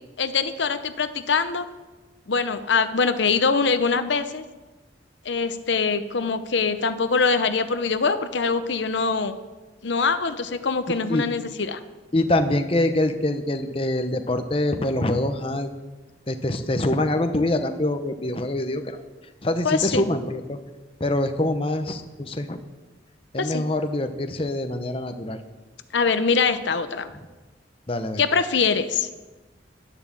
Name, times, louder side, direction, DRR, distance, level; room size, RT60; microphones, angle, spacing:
voice 1, 0.2-1.6 2.3-4.4 5.2-9.4 9.8-11.8 19.6-20.0 23.4-23.6 25.9-27.1 28.2-29.1, left 5 dB, 75° left, 10 dB, 0.8 m, -23 dB
voice 2, 12.1-15.7 16.3-19.0 19.4-20.6 21.0-22.6 23.3-25.4 27.9-28.2, left 1 dB, 30° left, 7 dB, 0.8 m, -24 dB
11.0 x 11.0 x 7.4 m, 1.2 s
head